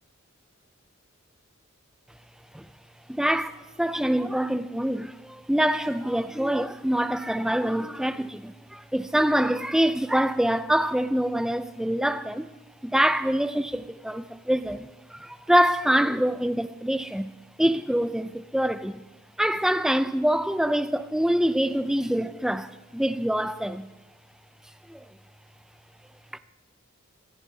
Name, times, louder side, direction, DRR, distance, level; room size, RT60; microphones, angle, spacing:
voice 1, 3.1-12.5 12.8-17.3 17.6-19.0 19.4-23.9 24.9-25.1 26.3-26.4, equal, ahead, 0.4 m, -25 dB
25.0 x 13.0 x 2.8 m
head